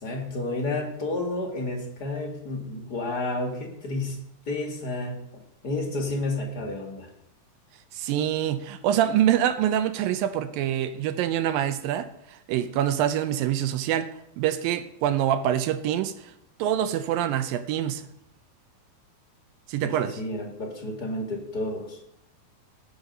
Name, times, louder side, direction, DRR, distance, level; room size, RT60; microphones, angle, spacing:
voice 1, 0.0-5.2 5.6-7.1 19.8-22.0, left 2 dB, 35° left, 1.7 m, -31 dB
voice 2, 7.9-14.1 14.4-16.1 16.6-18.0 19.7-20.2, right 10 dB, 80° right, 2.4 m, -25 dB
19.0 x 6.5 x 5.4 m
omnidirectional pair, 4.2 m